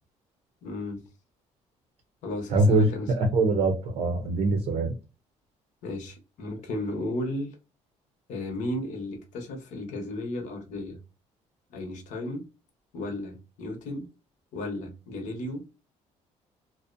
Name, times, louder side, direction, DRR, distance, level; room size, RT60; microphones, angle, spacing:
voice 1, 0.6-1.0 2.2-3.1 5.8-7.6 8.3-11.0 11.7-12.4 12.9-14.1 14.5-15.8, left 1 dB, 75° left, 0.8 m, -34 dB
voice 2, 2.5-2.9 3.2-4.9, right 2 dB, 55° right, 0.6 m, -23 dB
2.6 x 2.0 x 2.4 m
cardioid pair, 140°, 13 cm